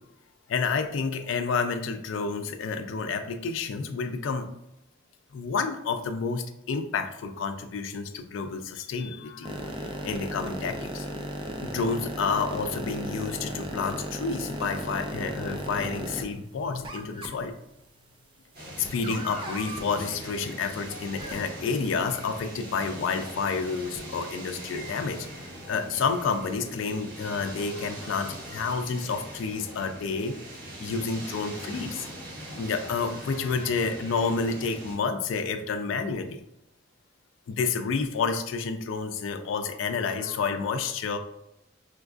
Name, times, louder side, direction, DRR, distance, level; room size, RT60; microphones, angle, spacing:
voice 1, 0.5-4.5 5.3-11.1 11.6-17.5 18.8-25.2 25.7-30.3 30.8-32.1 32.6-36.4 37.5-41.2, left 5 dB, 70° left, 7 dB, 0.3 m, -29 dB
sound 1, 9.4-16.2 16.8-17.3 18.8-19.8 21.2-21.3 23.9-24.0, right 1 dB, 25° right, 0.3 m, -35 dB
sound 2, 18.5-35.0, right 1 dB, 50° right, 1.0 m, -42 dB
4.4 x 2.4 x 2.4 m, 0.84 s
head